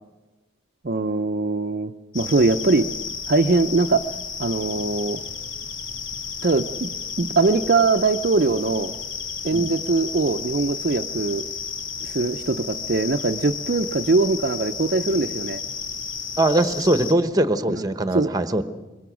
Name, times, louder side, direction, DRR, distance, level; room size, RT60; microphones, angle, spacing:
voice 1, 0.8-2.9 3.3-4.0 4.4-5.2 6.4-6.9 7.2-8.9 9.4-11.4 12.0-15.6 17.7-17.8 18.1-18.3, right 3 dB, 45° right, 6 dB, 0.6 m, -21 dB
sound 1, 2.1-17.1, left 6 dB, 75° left, 2.2 m, -32 dB
voice 2, 16.4-18.6, right 1 dB, 20° right, 11 dB, 1.0 m, -21 dB
25.0 x 22.5 x 6.2 m, 1.2 s
head